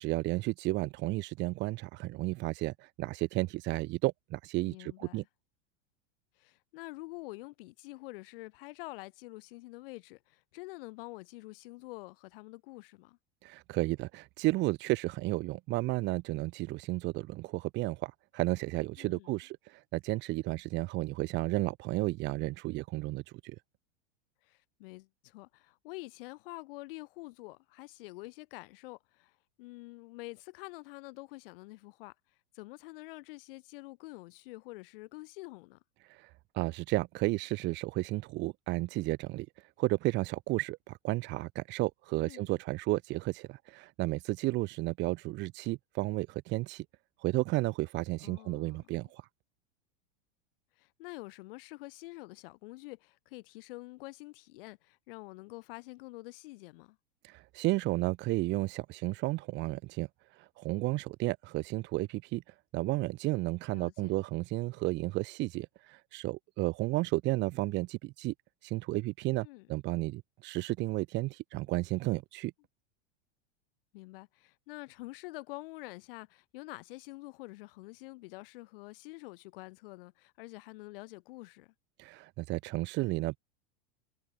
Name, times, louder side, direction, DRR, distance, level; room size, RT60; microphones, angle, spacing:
voice 1, 0.0-5.2 13.4-23.6 36.0-46.9 47.2-49.3 57.2-68.3 68.6-72.5 82.0-83.4, right 20 dB, 30° right, 2.0 m, -33 dB
voice 2, 4.7-5.3 6.4-13.2 19.0-19.3 24.4-32.1 32.5-35.8 42.1-42.5 48.2-48.9 50.8-57.0 63.7-64.1 69.4-69.7 73.9-81.7, left 22 dB, 50° left, 7.9 m, -47 dB
supercardioid pair, 165°, 35 cm